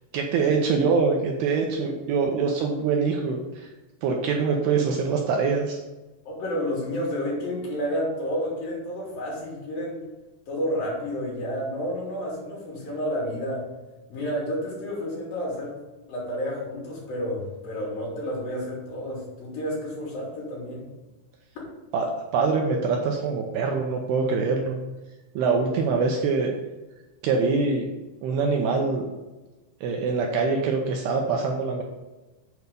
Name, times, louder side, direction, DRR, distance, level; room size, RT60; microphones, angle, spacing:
voice 1, 0.1-3.7 4.0-5.8 21.9-22.1 22.3-24.8 25.4-26.5 27.2-27.9 28.2-29.0 29.8-31.8, right 4 dB, 75° right, 1 dB, 2.5 m, -24 dB
voice 2, 6.3-10.0 10.5-13.7 14.1-15.8 16.1-20.9, equal, 55° left, -5 dB, 4.4 m, -30 dB
8.2 x 4.8 x 7.0 m, 1.1 s
omnidirectional pair, 5.1 m